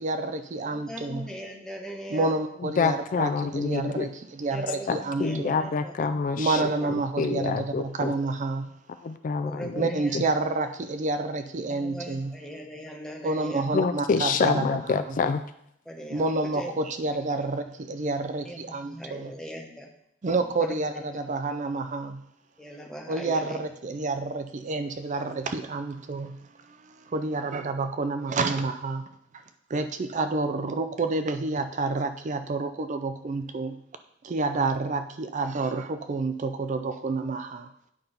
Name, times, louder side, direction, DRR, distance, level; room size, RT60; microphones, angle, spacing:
voice 1, 0.0-1.3 2.1-5.5 6.4-8.7 9.8-12.4 13.2-14.7 15.1-15.2 16.1-19.3 20.2-22.2 23.1-26.4 26.7-29.0 29.7-33.8 34.2-37.7, right 3 dB, 40° right, 9 dB, 0.4 m, -29 dB
voice 2, 0.6-2.4 4.5-5.9 6.6-7.0 9.4-10.2 11.7-13.7 15.9-16.7 17.1-17.5 18.5-19.9 20.6-21.0 22.6-23.6, equal, 5° left, 1 dB, 1.0 m, -40 dB
voice 3, 2.8-4.1 4.9-8.1 9.0-9.9 10.1-10.2 13.7-15.4, left 5 dB, 40° left, 10 dB, 0.3 m, -27 dB
8.9 x 5.6 x 3.9 m, 0.73 s
head